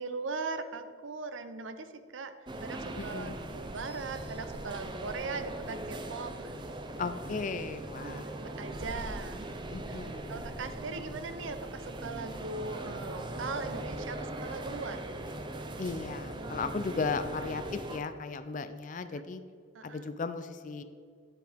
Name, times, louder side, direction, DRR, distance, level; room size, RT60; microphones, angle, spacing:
voice 1, 0.0-2.3 2.6-6.8 8.0-8.2 8.6-9.5 9.9-10.0 10.3-15.0 19.1-19.2 19.7-20.1, right 4 dB, 75° right, 10 dB, 0.6 m, -39 dB
sound 1, 2.5-18.0, right 1 dB, 25° right, 0.5 m, -40 dB
voice 2, 3.0-3.4 7.0-8.4 9.7-10.5 15.8-19.4 19.8-20.8, left 4 dB, 40° left, 10 dB, 0.4 m, -36 dB
9.6 x 7.5 x 3.5 m, 2.2 s
head